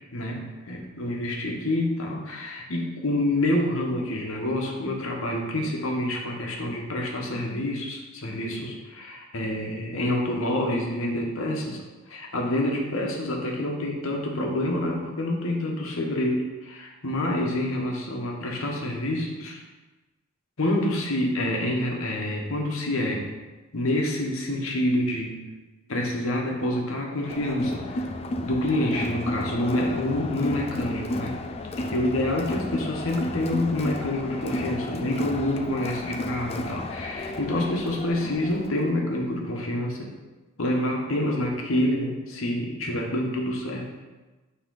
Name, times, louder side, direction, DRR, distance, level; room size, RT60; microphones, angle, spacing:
voice 1, 0.1-11.8 12.1-19.6 20.6-23.3 23.7-25.4 25.9-28.1 28.4-31.3 31.9-40.1 40.6-44.0, left 1 dB, 65° left, 0 dB, 1.1 m, -27 dB
Crowd, 27.3-38.8, left 1 dB, 25° left, 0.3 m, -32 dB
8.8 x 3.2 x 3.9 m, 1.2 s
head